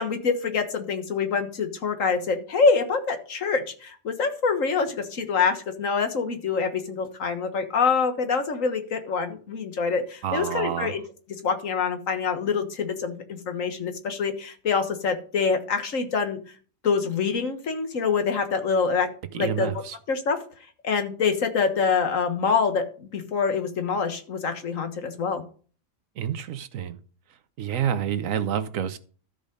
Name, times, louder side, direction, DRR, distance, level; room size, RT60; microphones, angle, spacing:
voice 1, 0.0-11.0 11.4-16.4 16.8-19.1 19.3-19.7 20.1-20.4 20.8-25.4, left 5 dB, 90° left, 1.8 m, -25 dB
voice 2, 10.2-11.0 19.3-20.0 26.2-27.0 27.6-29.0, right 9 dB, 85° right, 1.2 m, -28 dB
13.0 x 5.1 x 5.2 m
omnidirectional pair, 1.3 m